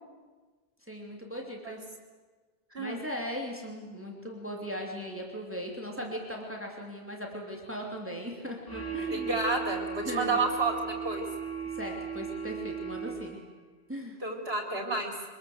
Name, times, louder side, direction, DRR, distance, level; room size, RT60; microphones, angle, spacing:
voice 1, 0.9-1.8 2.8-9.4 10.0-10.4 11.7-13.4 13.9-14.2, equal, 10° right, 0 dB, 3.0 m, -38 dB
sound 1, 8.7-13.5, right 6 dB, 20° left, 3.1 m, -37 dB
voice 2, 9.1-11.2 14.2-15.1, right 3 dB, 70° right, 3 dB, 4.2 m, -30 dB
24.0 x 21.0 x 7.9 m, 1.3 s
omnidirectional pair, 1.0 m